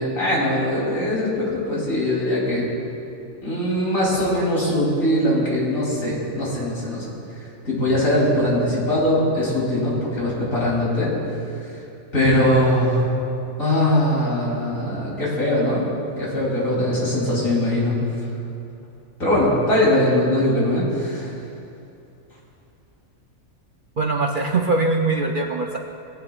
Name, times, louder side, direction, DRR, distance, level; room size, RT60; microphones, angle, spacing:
voice 1, 0.0-2.7 3.4-7.1 7.7-11.1 12.1-13.1 13.6-15.9 16.2-17.9 19.2-21.3, left 1 dB, 80° left, -6 dB, 3.6 m, -21 dB
voice 2, 24.0-25.8, right 3 dB, 55° right, 2 dB, 0.6 m, -22 dB
19.5 x 9.6 x 2.4 m, 2.7 s
omnidirectional pair, 1.4 m